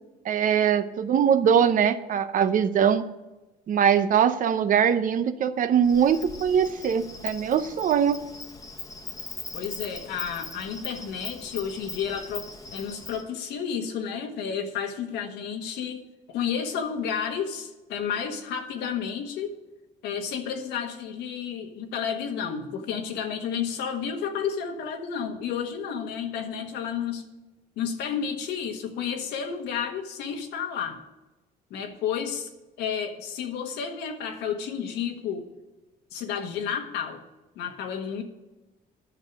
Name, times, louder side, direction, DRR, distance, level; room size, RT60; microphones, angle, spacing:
voice 1, 0.2-3.0 3.7-8.2, right 8 dB, 50° right, 12 dB, 0.7 m, -22 dB
Insect, 5.8-13.2, left 3 dB, 20° left, 1.2 m, -40 dB
voice 2, 9.5-16.0 16.3-19.6 20.0-27.2 27.8-31.0 31.7-32.5 32.8-35.5 36.1-37.2 37.5-38.2, left 7 dB, 85° left, 5 dB, 1.5 m, -31 dB
10.5 x 6.5 x 7.3 m, 1.1 s
cardioid pair, 110°, 17 cm